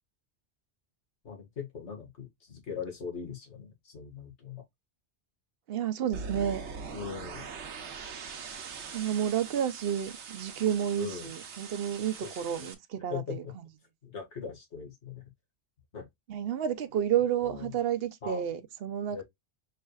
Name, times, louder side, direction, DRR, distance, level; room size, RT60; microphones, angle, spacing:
voice 1, 1.2-4.6 6.9-7.5 11.0-11.3 12.2-12.7 13.1-13.5 14.0-15.2 15.9-16.1 17.4-17.7 18.2-18.5 19.1-19.2, left 6 dB, 80° left, 2.0 m, -40 dB
voice 2, 5.7-6.6 8.9-13.4 16.3-19.2, right 9 dB, 60° right, 0.9 m, -30 dB
sound 1, 6.1-12.7, right 5 dB, 85° right, 1.2 m, -42 dB
5.6 x 3.3 x 2.3 m
omnidirectional pair, 1.1 m